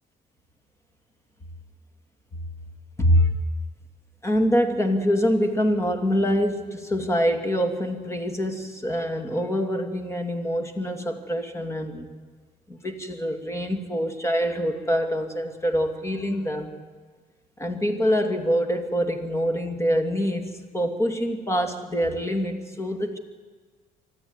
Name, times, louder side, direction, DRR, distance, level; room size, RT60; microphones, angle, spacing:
voice 1, 3.0-3.3 4.2-12.1 12.7-16.7 17.6-23.2, equal, 15° left, 6 dB, 2.6 m, -25 dB
25.0 x 13.0 x 9.7 m, 1.5 s
cardioid pair, 110°, 17 cm